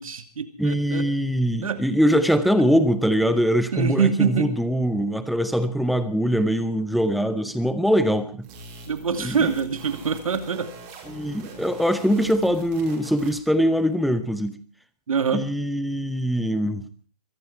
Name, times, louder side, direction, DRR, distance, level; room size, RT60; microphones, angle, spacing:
voice 1, 0.0-1.1 1.6-1.8 3.7-4.5 8.8-10.7 15.1-15.4, right 6 dB, 55° right, 9 dB, 2.5 m, -25 dB
voice 2, 0.6-8.5 9.2-9.4 11.1-14.6 15.3-16.9, equal, ahead, 13 dB, 0.7 m, -22 dB
sound 1, 8.4-13.5, right 3 dB, 25° right, 5.4 m, -43 dB
23.0 x 13.5 x 4.6 m, 0.41 s
figure-of-eight pair, 140°, 20 cm